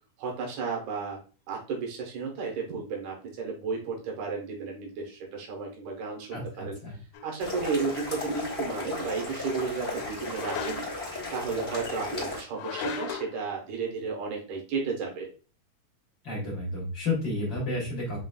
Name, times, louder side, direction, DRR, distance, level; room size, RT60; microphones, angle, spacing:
voice 1, 0.2-1.2 1.5-6.8 7.2-10.8 11.3-15.3, right 5 dB, 75° right, -1 dB, 2.4 m, -33 dB
voice 2, 6.3-7.0 16.2-18.2, left 2 dB, 50° left, -5 dB, 1.6 m, -31 dB
sound 1, 7.1-7.3 10.3-11.1 12.5-13.4, left 6 dB, 80° left, 1.8 m, -36 dB
sound 2, 7.4-12.4, left 2 dB, 15° left, 1.2 m, -35 dB
5.6 x 3.1 x 2.3 m, 0.37 s
omnidirectional pair, 3.4 m